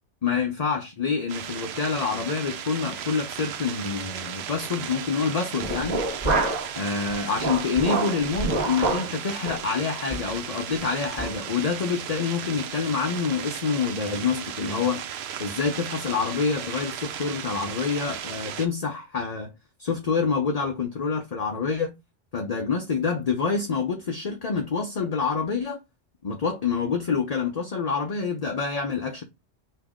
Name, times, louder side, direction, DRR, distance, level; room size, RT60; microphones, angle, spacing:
voice 1, 0.2-6.0 6.8-15.1 15.4-19.5 19.8-21.9 22.3-25.8 26.2-29.2, left 5 dB, 45° left, 0.6 m, -27 dB
sound 1, 1.3-18.7, right 9 dB, 65° right, 0.8 m, -36 dB
sound 2, 5.6-6.8 7.1-9.1 9.5-9.6 10.1-10.3 10.7-10.8 11.2-11.4, right 2 dB, 35° right, 1.4 m, -27 dB
5.3 x 2.8 x 3.5 m
omnidirectional pair, 1.3 m